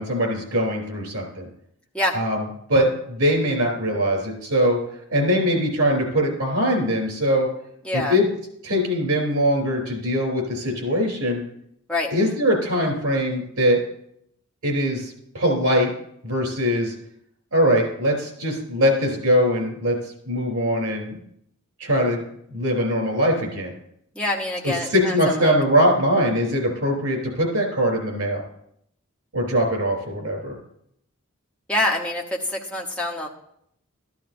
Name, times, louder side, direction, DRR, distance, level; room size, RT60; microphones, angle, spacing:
voice 1, 0.0-1.5 2.1-2.4 2.7-4.8 5.1-7.5 7.9-8.2 8.6-11.4 12.1-13.8 14.6-15.9 16.2-16.9 17.5-20.0 20.2-21.2 21.8-22.2 22.5-23.7 24.6-28.4 29.3-30.6, equal, 80° right, 2 dB, 3.2 m, -22 dB
voice 2, 7.8-8.2 11.9-12.1 24.1-25.5 31.7-33.3, left 1 dB, 5° left, -2 dB, 0.9 m, -25 dB
12.5 x 12.0 x 2.6 m, 0.73 s
head